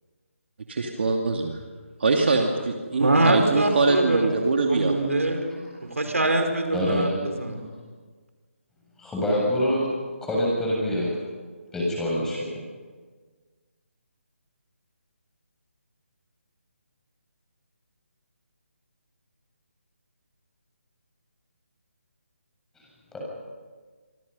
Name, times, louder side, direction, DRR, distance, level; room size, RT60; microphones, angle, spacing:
voice 1, 0.7-1.6 2.0-4.9, right 3 dB, 55° right, 2 dB, 2.6 m, -23 dB
voice 2, 3.0-4.3 4.7-7.6, right 2 dB, 80° right, 5 dB, 5.0 m, -24 dB
voice 3, 6.7-7.1 9.0-9.9 10.2-11.2 11.7-12.4 23.1-23.2, equal, 5° left, -4 dB, 7.4 m, -25 dB
27.0 x 26.5 x 5.6 m, 1.5 s
figure-of-eight pair, 150°, 7 cm